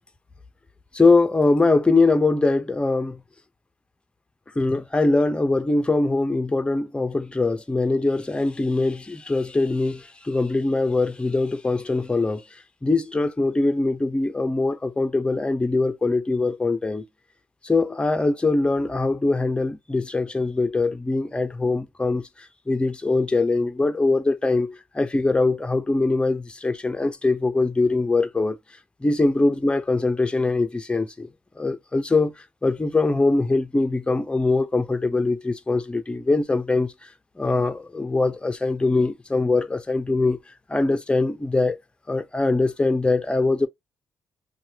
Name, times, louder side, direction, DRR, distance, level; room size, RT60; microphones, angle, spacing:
voice 1, 0.9-3.2 4.6-17.0 17.6-28.6 29.0-31.3 31.6-37.1 37.4-40.4 40.7-41.8 42.1-43.7, left 3 dB, 20° left, 0.6 m, -22 dB
3.0 x 2.2 x 2.7 m
supercardioid pair, 55°, 6 cm